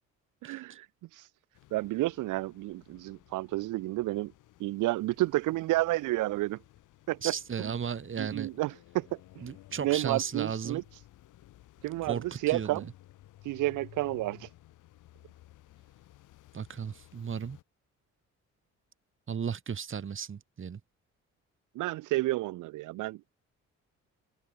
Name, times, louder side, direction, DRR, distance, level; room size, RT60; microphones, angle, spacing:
voice 1, 0.4-0.9 1.1-1.3 1.7-4.3 4.6-6.6 7.1-7.7 8.2-9.2 9.8-10.8 11.8-12.8 13.4-14.5 21.7-23.2, right 18 dB, 90° right, 0.9 m, -31 dB
sound 1, 1.5-17.6, left 15 dB, 85° left, 4.3 m, -56 dB
voice 2, 7.2-8.5 9.4-10.8 12.0-12.9 16.5-17.6 19.3-20.8, right 7 dB, 45° right, 2.3 m, -35 dB
cardioid pair, 90°, 30 cm